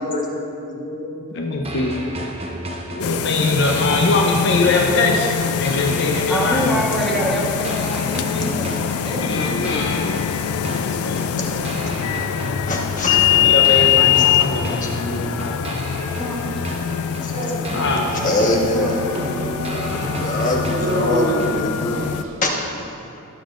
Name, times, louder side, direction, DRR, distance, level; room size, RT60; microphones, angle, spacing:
voice 1, 0.0-1.3 12.7-13.2 13.6-14.9 17.2-17.3 17.6-19.0 19.6-22.1 22.4-22.5 23.0-23.1, left 1 dB, 40° left, -1 dB, 1.3 m, -25 dB
voice 2, 1.3-2.1 2.9-6.7 9.0-10.2 10.6-11.3 13.3-15.6 17.7-18.1 19.9-20.2, left 2 dB, 60° left, 1 dB, 0.7 m, -22 dB
sound 1, 1.6-21.6, right 1 dB, 30° right, 0.9 m, -33 dB
sound 2, 3.0-22.2, left 10 dB, 90° left, 0.3 m, -23 dB
voice 3, 6.3-9.7 16.1-16.6 18.6-19.0, equal, ahead, -5 dB, 1.3 m, -26 dB
Dog, 17.3-22.4, right 1 dB, 65° right, 1.9 m, -28 dB
17.0 x 7.1 x 2.5 m, 2.8 s
head